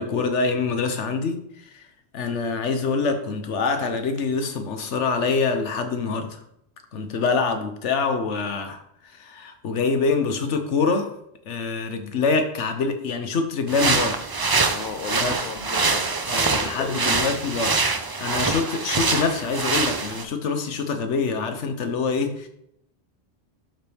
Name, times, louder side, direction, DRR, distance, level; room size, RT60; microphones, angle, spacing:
voice 1, 0.0-1.8 2.1-6.4 6.9-11.1 11.5-14.2 14.6-14.8 15.1-15.3 16.3-17.8 18.2-22.5, left 4 dB, 85° left, 6 dB, 1.3 m, -25 dB
sound 1, 13.7-20.2, right 4 dB, 35° right, 0.4 m, -24 dB
voice 2, 14.7-17.3, left 6 dB, 55° left, 5 dB, 0.7 m, -36 dB
11.5 x 4.4 x 3.5 m, 0.76 s
omnidirectional pair, 1.2 m